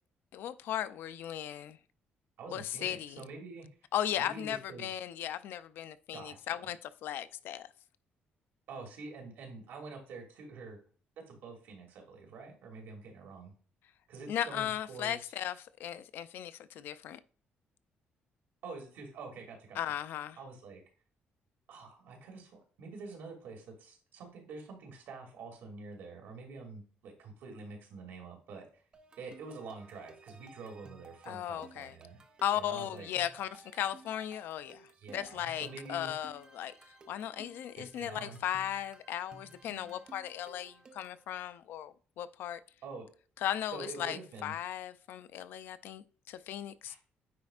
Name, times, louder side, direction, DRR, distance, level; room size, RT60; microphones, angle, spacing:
voice 1, 0.3-1.8 2.5-3.2 3.9-7.7 14.3-17.2 19.7-20.4 31.3-32.0 32.4-36.7 37.1-42.6 43.4-47.0, left 11 dB, 65° left, 0.4 m, -37 dB
voice 2, 2.4-3.7 4.2-4.9 6.1-6.7 8.7-10.8 11.3-13.5 14.1-15.2 18.6-19.8 20.4-20.8 21.7-28.8 29.2-32.2 32.5-33.1 35.0-36.1 37.7-38.4 42.8-43.1 43.7-44.5 46.8-47.0, right 4 dB, 75° right, 2.4 m, -47 dB
sound 1, 28.9-41.2, right 4 dB, 25° right, 0.6 m, -57 dB
9.4 x 4.3 x 2.4 m
cardioid pair, 175°, 4 cm